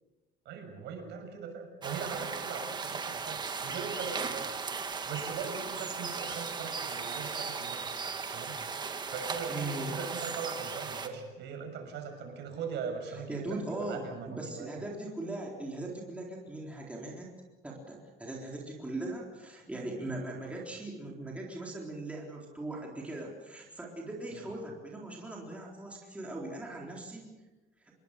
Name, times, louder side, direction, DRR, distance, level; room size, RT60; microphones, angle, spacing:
voice 1, 0.4-4.5 5.1-7.9 8.3-8.6 9.1-14.7 20.4-20.5, right 6 dB, 60° right, 4 dB, 6.6 m, -40 dB
sound 1, 1.8-11.1, right 5 dB, 20° right, 1.8 m, -37 dB
voice 2, 9.5-10.0 13.1-17.3 17.6-27.3, right 2 dB, 5° right, -2 dB, 3.9 m, -39 dB
27.0 x 22.0 x 6.7 m, 1.1 s
cardioid pair, 165°, 20 cm